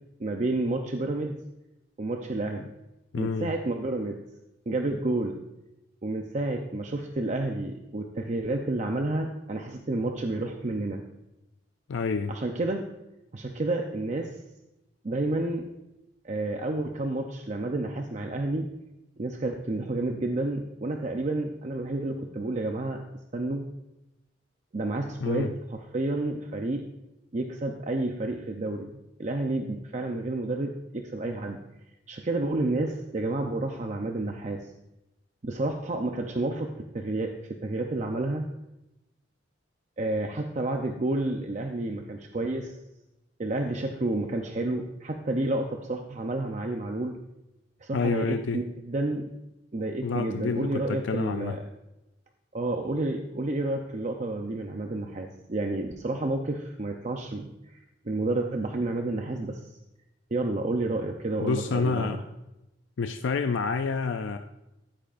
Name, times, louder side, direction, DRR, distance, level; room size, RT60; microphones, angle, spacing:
voice 1, 0.2-1.4 2.0-2.7 3.2-4.2 4.7-5.4 6.0-11.0 12.3-12.8 13.3-14.3 15.0-15.7 16.2-18.7 19.2-23.0 23.3-23.6 24.7-26.8 27.3-28.9 29.2-31.6 32.1-34.6 35.4-37.3 37.6-38.5 40.0-42.7 43.4-47.2 47.8-49.3 49.7-51.6 52.5-57.8 58.0-59.6 60.3-62.2, right 2 dB, 40° right, 3 dB, 0.7 m, -30 dB
voice 2, 3.1-3.5 11.9-12.3 25.2-25.5 47.9-48.6 50.0-51.5 61.4-62.2 63.0-64.4, left 4 dB, 85° left, 7 dB, 0.4 m, -28 dB
14.5 x 8.6 x 2.5 m, 0.93 s
head